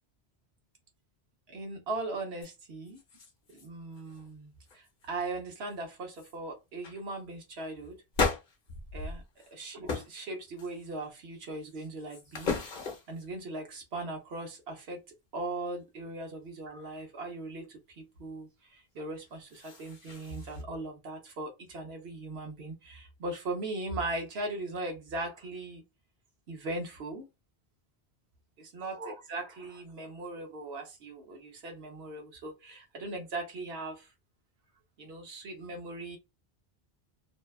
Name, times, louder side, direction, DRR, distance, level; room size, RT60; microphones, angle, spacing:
voice 1, 1.5-3.0 3.5-8.0 8.9-9.2 9.5-12.5 13.1-15.0 15.3-25.8 26.5-27.3 28.6-34.1 35.0-36.2, right 2 dB, 75° right, 1.0 m, -39 dB
sound 1, 2.4-2.5 2.9-3.7 3.9-4.3 4.7-5.1 5.7-5.8 6.1-6.4 6.8-7.0 8.1-9.5 9.9-10.2 10.6-11.1 11.6-13.2 19.2-20.6, left 4 dB, 55° left, 0.8 m, -36 dB
2.6 x 2.1 x 2.3 m
omnidirectional pair, 1.1 m